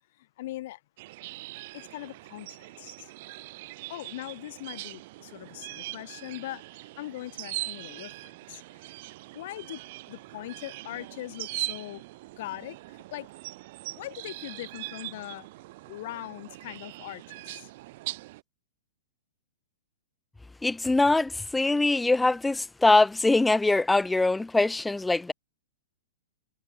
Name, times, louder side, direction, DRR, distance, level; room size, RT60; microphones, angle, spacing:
voice 1, 0.1-0.8 1.7-3.1 3.9-9.8 10.1-12.0 12.4-13.3 13.9-15.5 15.9-17.7, left 16 dB, 55° left, 5.3 m, -41 dB
sound 1, 1.0-18.4, right 19 dB, 50° right, 3.8 m, -41 dB
voice 2, 20.6-25.3, left 2 dB, 5° left, 1.3 m, -23 dB
figure-of-eight pair, 105°, 0 cm